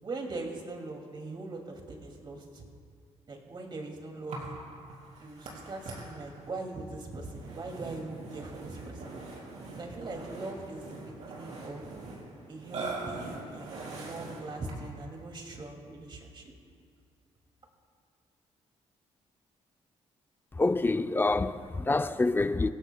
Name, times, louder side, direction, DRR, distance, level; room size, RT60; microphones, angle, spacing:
voice 1, 0.0-2.6 3.3-4.5 5.2-9.2 9.8-12.0 12.5-16.5, right 2 dB, 40° right, 2.4 m, -41 dB
Burping eructation, 4.3-15.0, right 3 dB, 75° right, 4.0 m, -43 dB
voice 2, 20.5-22.7, left 3 dB, 20° left, 0.5 m, -27 dB
26.5 x 16.5 x 2.3 m
cardioid pair, 105°, 12 cm